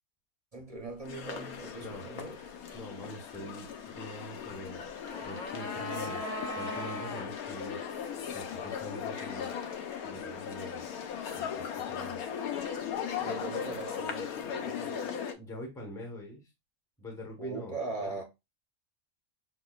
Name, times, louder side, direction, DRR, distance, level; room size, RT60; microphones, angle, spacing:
voice 1, 0.5-2.4 13.2-15.1 17.4-18.2, right 3 dB, 45° right, 0.5 m, -40 dB
sound 1, 1.0-15.3, left 8 dB, 90° left, 1.1 m, -38 dB
voice 2, 1.8-2.3 2.7-4.9 5.1-8.0 8.3-9.6 10.0-10.9 11.4-12.2 15.4-16.5 17.0-17.7 18.0-18.2, equal, 5° left, 0.8 m, -44 dB
sound 2, 4.8-7.3 7.6-7.7, equal, 70° left, 1.2 m, -40 dB
5.7 x 2.2 x 2.3 m
omnidirectional pair, 1.5 m